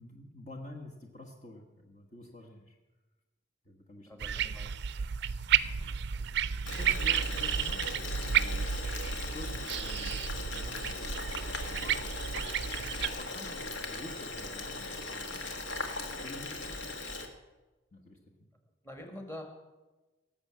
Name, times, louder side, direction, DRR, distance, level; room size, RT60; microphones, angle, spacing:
voice 1, 0.0-2.8 3.6-4.3 5.6-8.6 9.1-12.3 12.9-15.6 15.8-16.8 17.9-18.5, left 2 dB, 40° left, 0 dB, 1.3 m, -49 dB
voice 2, 4.0-4.7 18.8-19.4, left 1 dB, 15° left, 3 dB, 1.9 m, -45 dB
sound 1, 4.2-13.1, right 8 dB, 60° right, 0.4 m, -32 dB
Boiling, 6.7-17.3, left 3 dB, 70° left, 1.6 m, -39 dB
18.0 x 7.0 x 7.4 m, 1.1 s
head